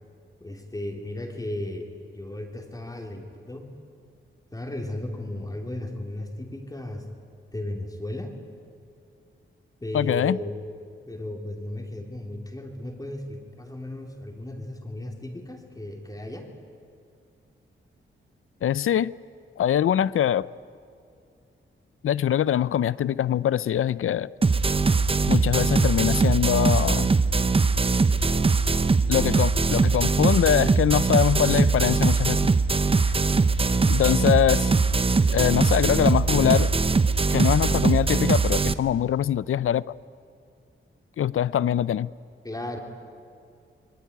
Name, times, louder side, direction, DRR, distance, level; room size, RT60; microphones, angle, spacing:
voice 1, 0.4-3.7 4.5-7.0 7.5-8.3 9.8-10.6 11.1-16.5 42.4-42.8, left 1 dB, 15° left, 2 dB, 3.1 m, -35 dB
voice 2, 9.9-10.4 18.6-19.1 19.6-20.5 22.0-24.3 25.3-27.1 29.1-32.4 33.9-34.7 35.3-36.7 37.3-39.8 41.2-42.1, left 10 dB, 80° left, 19 dB, 0.6 m, -23 dB
sound 1, 24.4-38.7, right 4 dB, 25° right, 0.8 m, -21 dB
26.5 x 21.5 x 9.5 m, 2.4 s
wide cardioid pair, 120°, 21 cm